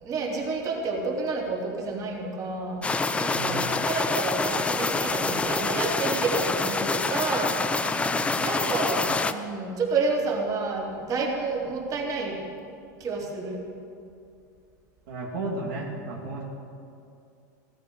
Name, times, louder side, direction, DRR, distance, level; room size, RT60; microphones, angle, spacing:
voice 1, 0.0-2.8 3.2-7.5 8.4-12.3 13.0-13.6, right 3 dB, 35° right, -1 dB, 3.5 m, -29 dB
sound 1, 2.8-9.3, left 3 dB, 10° left, 0.6 m, -26 dB
voice 2, 3.3-3.9 7.9-8.4 15.1-16.4, right 2 dB, 70° right, -2 dB, 2.8 m, -34 dB
16.0 x 13.5 x 6.5 m, 2.6 s
supercardioid pair, 120°, 10 cm